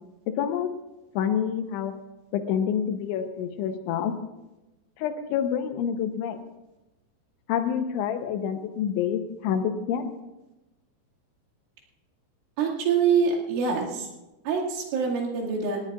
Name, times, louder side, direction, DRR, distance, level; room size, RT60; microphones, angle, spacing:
voice 1, 0.4-0.7 1.1-1.9 2.3-4.1 5.0-6.4 7.5-10.1, left 8 dB, 85° left, 7 dB, 3.3 m, -27 dB
voice 2, 12.6-14.1 14.5-15.8, right 6 dB, 90° right, -3 dB, 4.7 m, -25 dB
19.5 x 17.0 x 2.4 m, 1.0 s
omnidirectional pair, 5.4 m